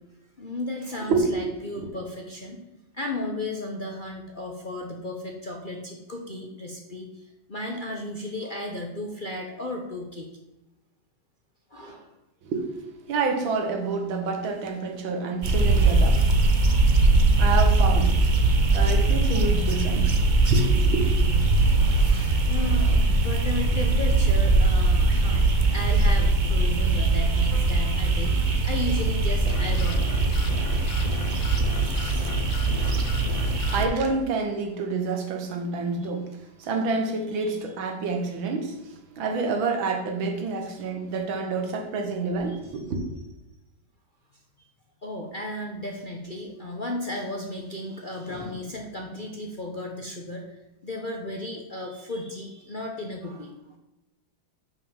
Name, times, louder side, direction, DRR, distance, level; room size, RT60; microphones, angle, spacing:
voice 1, 0.4-2.6 2.9-10.3 11.7-12.1 20.4-20.5 21.5-31.0 36.0-36.1 37.4-37.6 42.5-42.6 45.0-50.6 50.8-53.5, left 1 dB, 40° left, 0 dB, 0.7 m, -35 dB
voice 2, 13.1-16.3 17.4-18.1 18.7-20.2 20.5-21.0 33.7-36.3 36.6-38.8 39.2-43.0, right 3 dB, 90° right, 4 dB, 2.0 m, -28 dB
sound 1, 15.4-33.9, right 2 dB, 45° right, 0.6 m, -21 dB
sound 2, 29.5-33.8, left 7 dB, 85° left, 1.4 m, -36 dB
6.5 x 5.6 x 7.1 m, 0.95 s
omnidirectional pair, 2.1 m